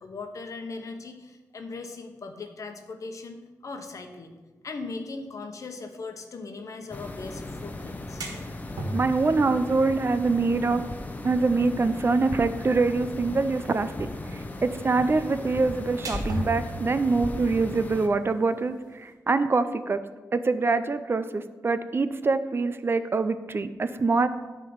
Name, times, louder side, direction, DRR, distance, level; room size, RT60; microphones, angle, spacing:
voice 1, 0.0-4.4 4.6-8.3, left 3 dB, 60° left, 5 dB, 1.0 m, -39 dB
sound 1, 6.9-18.1, left 2 dB, 25° left, 0.8 m, -37 dB
sound 2, 7.9-19.1, equal, 90° right, 1.6 m, -41 dB
voice 2, 8.9-10.8 11.2-20.0 20.3-24.3, right 3 dB, 40° right, 11 dB, 0.5 m, -25 dB
10.0 x 3.7 x 7.0 m, 1.3 s
cardioid pair, 90°, 6 cm